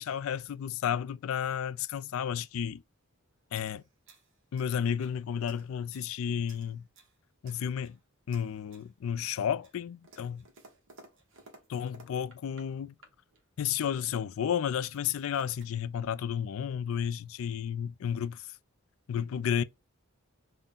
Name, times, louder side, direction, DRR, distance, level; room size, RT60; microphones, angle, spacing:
voice 1, 0.0-2.8 3.5-3.8 4.5-6.8 7.4-8.0 8.3-10.4 11.7-13.0 13.6-18.5 19.1-19.6, left 8 dB, 65° left, 0.3 m, -32 dB
sound 1, 3.5-5.2 5.5-6.1 6.5-7.2 7.4-8.0 8.3-8.9 9.2-12.7 13.0-13.4 14.2-14.3 14.5-15.7, right 3 dB, 60° right, 1.1 m, -58 dB
3.7 x 2.1 x 3.8 m
head